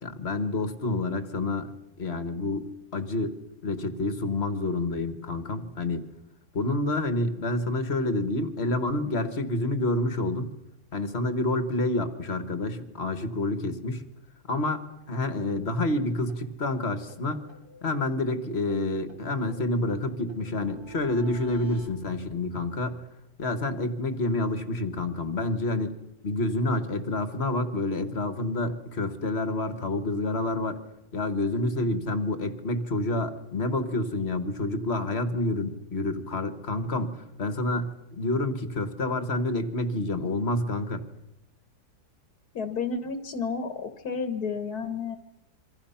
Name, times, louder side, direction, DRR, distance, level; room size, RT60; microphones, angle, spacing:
voice 1, 0.0-1.7 2.0-3.3 3.6-6.0 6.5-10.5 10.9-14.0 14.5-17.4 17.8-23.0 23.4-25.9 26.2-30.8 31.1-41.0, left 2 dB, 40° left, 9 dB, 1.8 m, -28 dB
sound 1, 15.5-15.6 15.9-16.0 16.3-16.4 16.7-16.8 17.1-18.4 18.7-21.9, right 4 dB, 70° right, 3.0 m, -48 dB
voice 2, 42.5-45.2, left 5 dB, 70° left, 9 dB, 1.8 m, -31 dB
27.0 x 24.5 x 5.8 m, 0.93 s
omnidirectional pair, 1.7 m